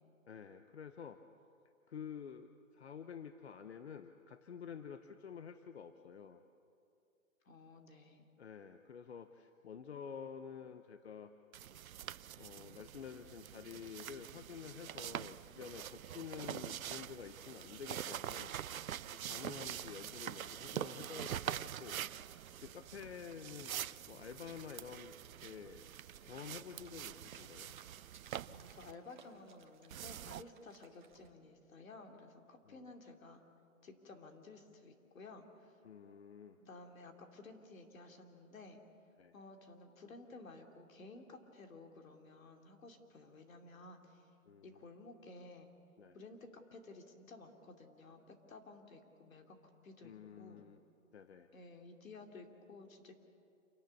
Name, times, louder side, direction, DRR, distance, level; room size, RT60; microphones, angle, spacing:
voice 1, 0.3-1.2 1.9-2.5 2.7-6.4 8.4-11.3 12.3-18.6 19.1-25.1 25.4-27.7 32.7-32.9 35.8-36.6 39.2-39.3 44.5-44.8 46.0-46.2 50.0-50.8 51.1-51.5, left 7 dB, 50° left, 9 dB, 0.8 m, -50 dB
voice 2, 7.4-8.2 19.8-20.2 28.5-33.4 33.8-35.7 36.6-38.8 39.3-44.3 44.6-45.7 46.1-50.7 51.5-53.1, left 3 dB, 70° left, 4 dB, 3.0 m, -54 dB
sound 1, 11.5-28.9 29.9-30.4, right 10 dB, 80° right, 0.7 m, -45 dB
sound 2, 19.5-31.3, right 7 dB, 35° right, 1.1 m, -65 dB
28.0 x 12.0 x 8.5 m, 2.5 s
hypercardioid pair, 175°, 41 cm